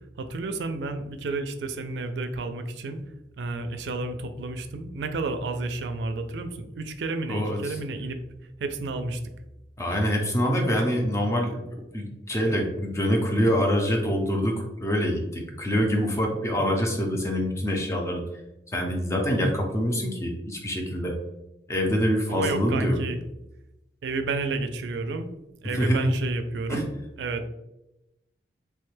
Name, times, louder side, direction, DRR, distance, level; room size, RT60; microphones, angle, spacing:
voice 1, 0.2-3.0 3.4-8.2 8.6-9.2 22.3-23.2 24.0-25.3 25.6-26.9 27.2-27.5, right 3 dB, 80° right, 8 dB, 0.4 m, -31 dB
voice 2, 9.8-18.2 18.7-21.1 21.7-23.0 25.8-26.0 26.7-26.8, equal, 15° left, 1 dB, 0.5 m, -25 dB
3.1 x 2.2 x 3.1 m, 0.94 s
head